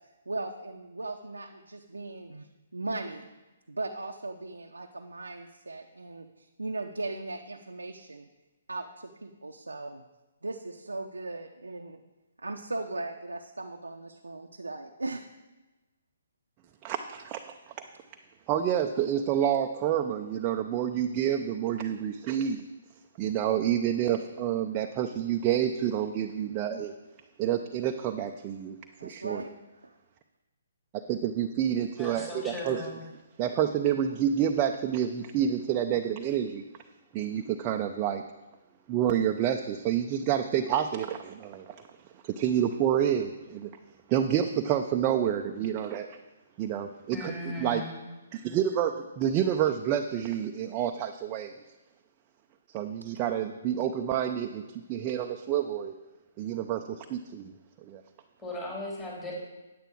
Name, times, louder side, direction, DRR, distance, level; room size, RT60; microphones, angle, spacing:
voice 1, 0.3-2.5 2.7-3.3 3.7-8.3 8.7-10.0 10.4-12.0 12.4-15.2 29.0-29.5 29.8-29.9, right 2 dB, 90° right, 2 dB, 0.6 m, -38 dB
voice 2, 16.8-17.4 18.5-22.7 23.2-26.9 27.4-28.8 29.0-29.4 30.9-32.9 33.4-36.6 37.1-38.2 38.9-41.8 42.2-43.7 44.1-46.1 46.6-47.8 48.3-51.5 52.7-54.6 54.9-55.9 56.4-57.5 57.8-58.0, right 9 dB, 30° right, 4 dB, 0.5 m, -28 dB
voice 3, 32.0-33.0 47.1-48.0 58.4-59.3, left 2 dB, 15° left, -5 dB, 3.7 m, -37 dB
9.3 x 8.9 x 4.6 m, 1.1 s
figure-of-eight pair, 135°, 0 cm